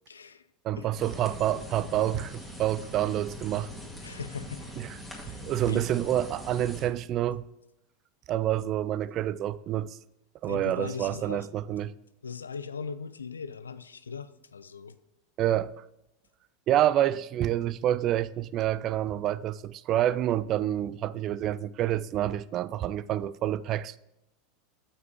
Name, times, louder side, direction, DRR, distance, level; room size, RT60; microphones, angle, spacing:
voice 1, 0.1-0.5 0.8-0.9 4.0-4.7 5.1-5.8 10.5-11.5 12.2-15.0, left 6 dB, 80° left, 0.4 m, -39 dB
voice 2, 0.6-3.7 4.8-4.9 5.4-7.4 8.3-10.0 10.4-11.9 15.4-15.7 16.7-24.0, right 12 dB, 40° right, 0.3 m, -28 dB
sound 1, 1.0-6.9, equal, ahead, 2.0 m, -42 dB
7.1 x 5.9 x 4.6 m
figure-of-eight pair, 85°, 0 cm